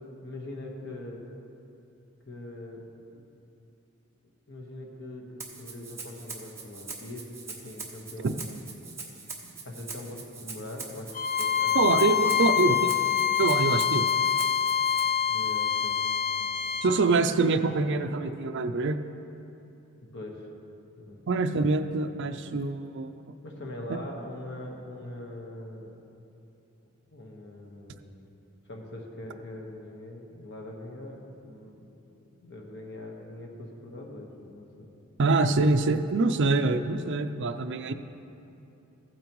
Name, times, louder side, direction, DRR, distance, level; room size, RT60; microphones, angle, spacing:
voice 1, 0.2-1.2 2.2-2.8 3.1-3.2 4.5-8.5 9.4-12.8 14.4-14.5 14.7-14.8 15.3-16.0 16.4-16.5 20.0-20.4 21.0-21.2 23.4-25.9 27.1-28.3 28.7-31.9 32.2-34.9, left 1 dB, 55° left, 0 dB, 1.3 m, -42 dB
Rattle (instrument), 5.4-15.0, right 4 dB, 10° right, 0.9 m, -42 dB
Bowed string instrument, 11.1-16.9, left 8 dB, 35° left, 0.5 m, -25 dB
voice 2, 11.7-12.9 13.4-14.0 16.8-19.0 21.3-23.2 35.2-37.9, right 3 dB, 55° right, 7 dB, 0.4 m, -25 dB
15.5 x 8.8 x 3.1 m, 2.8 s
head